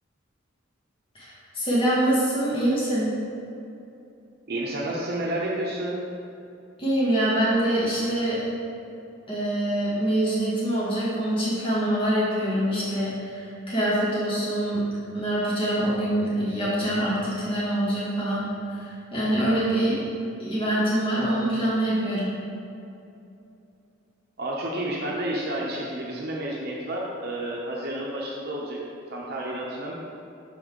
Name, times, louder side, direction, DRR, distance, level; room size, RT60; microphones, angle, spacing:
voice 1, 1.1-3.1 6.8-8.4 9.3-14.8 15.1-20.0 20.4-22.3, right 1 dB, 25° left, -8 dB, 1.2 m, -25 dB
voice 2, 4.5-6.0 24.4-28.8 29.1-29.9, right 1 dB, 50° right, -3 dB, 0.7 m, -30 dB
6.0 x 5.4 x 3.7 m, 2.7 s
head